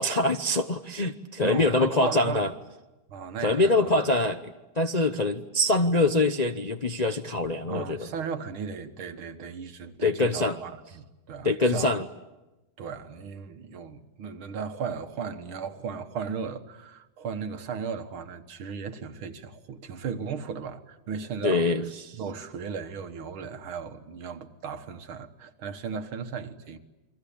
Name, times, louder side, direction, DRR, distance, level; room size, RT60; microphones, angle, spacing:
voice 1, 0.0-2.5 3.4-8.0 10.0-10.6 11.4-12.0 21.4-22.2, left 2 dB, 45° left, 0.5 m, -24 dB
voice 2, 1.4-2.5 3.1-3.7 7.7-11.9 12.8-21.7 22.1-26.8, right 6 dB, 85° right, 2.3 m, -36 dB
29.0 x 23.0 x 8.7 m
omnidirectional pair, 2.2 m